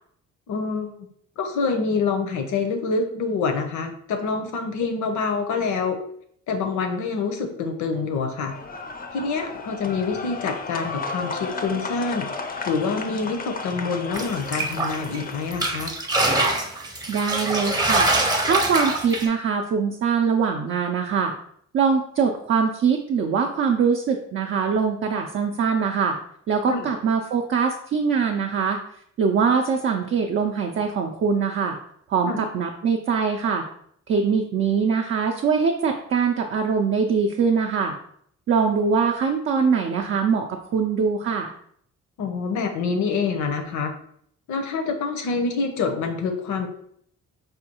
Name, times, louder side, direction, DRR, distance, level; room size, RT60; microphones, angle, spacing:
voice 1, 0.5-0.9 1.4-6.0 6.5-8.6 9.1-12.3 12.6-15.9 26.7-26.9 32.3-32.4 42.2-43.9 44.5-46.7, left 4 dB, 75° left, 5 dB, 0.7 m, -26 dB
sound 1, 8.5-15.9, left 4 dB, 30° left, 0.5 m, -34 dB
sound 2, 14.1-15.2 15.5-19.3, right 2 dB, 15° right, 0.7 m, -24 dB
voice 2, 17.1-18.1 18.5-21.3 21.7-26.2 26.5-28.8 29.2-31.8 32.1-33.6 34.1-38.0 38.5-41.5, right 5 dB, 45° right, 2 dB, 0.4 m, -22 dB
4.9 x 2.3 x 2.9 m, 0.66 s
cardioid pair, 90°, 30 cm